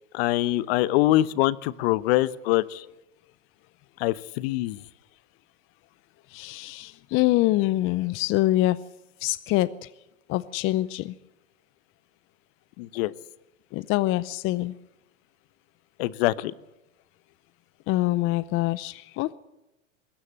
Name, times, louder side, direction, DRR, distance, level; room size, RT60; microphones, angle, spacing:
voice 1, 0.1-2.8 4.0-4.8 12.8-13.1 16.0-16.5, left 16 dB, 50° left, 19 dB, 1.0 m, -24 dB
voice 2, 6.3-8.8 9.2-9.9 10.3-11.2 13.7-14.7 17.9-19.3, left 17 dB, 35° left, 17 dB, 0.6 m, -25 dB
20.5 x 17.5 x 7.6 m, 0.93 s
hypercardioid pair, 115°, 39 cm